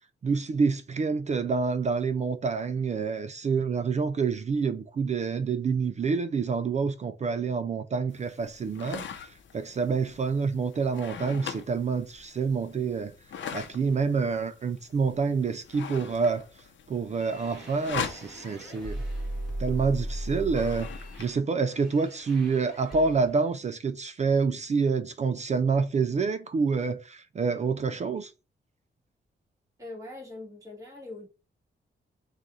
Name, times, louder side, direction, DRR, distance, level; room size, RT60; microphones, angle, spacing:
voice 1, 0.2-13.1 13.5-16.5 16.9-19.0 19.6-20.9 21.2-28.3, right 5 dB, 35° right, 0.4 m, -27 dB
sound 1, 8.1-21.3, left 7 dB, 75° left, 0.7 m, -42 dB
sound 2, 17.1-23.5, right 1 dB, ahead, 2.4 m, -38 dB
voice 2, 29.8-31.3, left 2 dB, 15° right, 1.6 m, -42 dB
4.0 x 2.4 x 4.7 m
wide cardioid pair, 105°, 20 cm